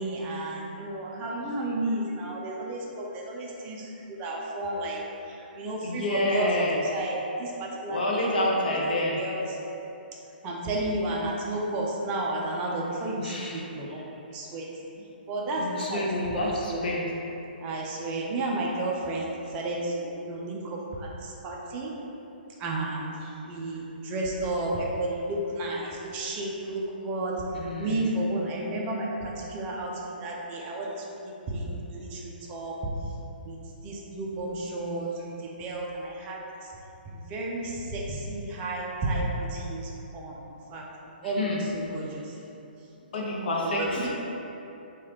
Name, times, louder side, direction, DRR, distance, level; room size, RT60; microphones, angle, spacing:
voice 1, 0.0-3.8 4.2-5.0 5.5-6.7 6.9-8.3 8.9-9.4 10.4-14.0 14.3-14.7 15.3-16.8 17.6-21.1 21.4-21.9 22.6-23.1 23.5-27.3 27.8-29.9 30.2-32.8 33.5-33.6 33.8-35.1 35.4-36.4 37.1-40.3 40.7-40.8 41.2-42.2 43.6-44.2, right 1 dB, 25° right, -2 dB, 0.4 m, -32 dB
voice 2, 5.8-6.8 7.9-9.2 13.2-13.6 13.9-14.0 15.6-17.0 27.5-28.1 41.2-41.6 43.1-44.1, left 1 dB, 65° left, -3 dB, 0.6 m, -28 dB
3.1 x 2.3 x 3.0 m, 2.9 s
hypercardioid pair, 135°, 5 cm